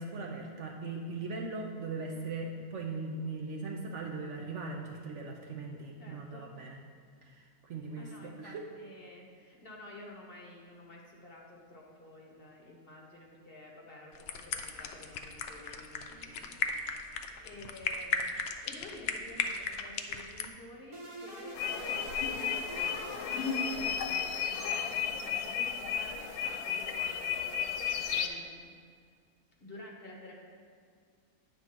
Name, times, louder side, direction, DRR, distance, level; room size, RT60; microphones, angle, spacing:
voice 1, 0.0-6.8 7.2-8.6, right 3 dB, 65° right, 1 dB, 0.9 m, -39 dB
voice 2, 6.0-6.5 8.0-28.7 29.6-30.3, left 1 dB, 45° left, -2 dB, 1.0 m, -51 dB
sound 1, 14.1-20.5, left 6 dB, 65° left, 0.7 m, -36 dB
sound 2, 20.9-24.5, right 2 dB, 30° right, 0.6 m, -45 dB
sound 3, 21.5-28.3, left 7 dB, 85° left, 1.1 m, -33 dB
9.1 x 3.7 x 5.8 m, 2.2 s
omnidirectional pair, 1.6 m